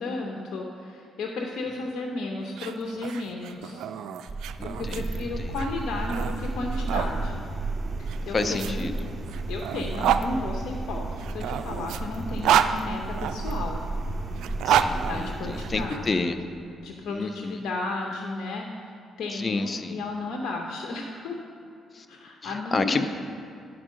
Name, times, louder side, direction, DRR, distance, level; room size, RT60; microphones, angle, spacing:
voice 1, 0.0-3.9 4.6-7.4 8.0-8.9 9.5-11.1 11.3-13.8 15.0-16.1 16.8-18.9 19.2-21.4 22.1-23.0, left 2 dB, 70° left, 1 dB, 0.7 m, -33 dB
sound 1, 2.4-7.1 8.1-10.3 11.2-13.5 14.3-16.0, right 9 dB, 80° right, 0.3 m, -28 dB
sound 2, 4.3-15.9, right 2 dB, 35° right, 0.8 m, -33 dB
voice 2, 4.6-5.5 8.3-9.1 12.3-12.5 14.6-16.4 17.1-17.6 19.3-20.0 21.9-22.1 22.4-23.1, left 3 dB, 35° left, 9 dB, 0.5 m, -30 dB
9.9 x 4.5 x 6.3 m, 2.5 s
cardioid pair, 90°, 0 cm